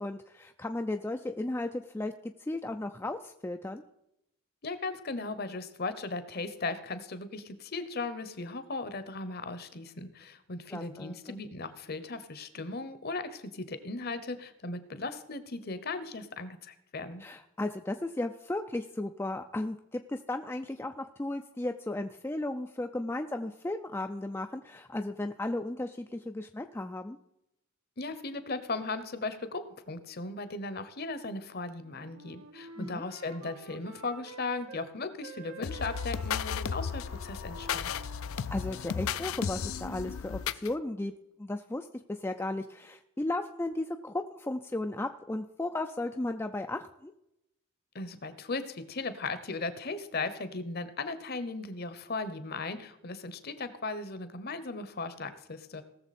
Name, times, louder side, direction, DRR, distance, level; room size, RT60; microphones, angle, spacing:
voice 1, 0.0-2.1 2.4-3.8 10.7-11.4 17.2-27.2 32.8-33.0 38.5-41.1 41.4-47.1, left 2 dB, 10° left, 5 dB, 0.3 m, -35 dB
voice 2, 4.6-17.2 28.0-37.9 47.9-55.8, left 3 dB, 45° left, 12 dB, 0.9 m, -37 dB
Wind instrument woodwind instrument, 31.8-34.9 35.2-39.0, right 4 dB, 80° right, 1.1 m, -49 dB
sound 1, 35.6-40.7, left 7 dB, 75° left, 0.4 m, -34 dB
18.5 x 7.0 x 4.2 m, 0.82 s
head